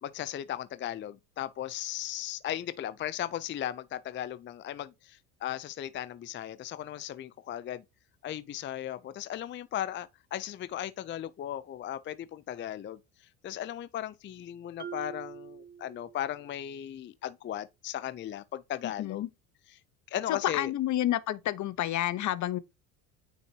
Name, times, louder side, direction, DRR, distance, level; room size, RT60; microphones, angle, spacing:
voice 1, 0.0-7.8 8.2-13.0 13.4-19.2 20.1-20.7, left 11 dB, 30° left, 0.5 m, -37 dB
Marimba xylophone, 14.8-16.6, right 7 dB, 25° right, 0.7 m, -44 dB
voice 2, 18.8-19.3 20.3-22.6, left 13 dB, 45° left, 1.0 m, -30 dB
9.1 x 5.0 x 2.9 m
hypercardioid pair, 75°, 42 cm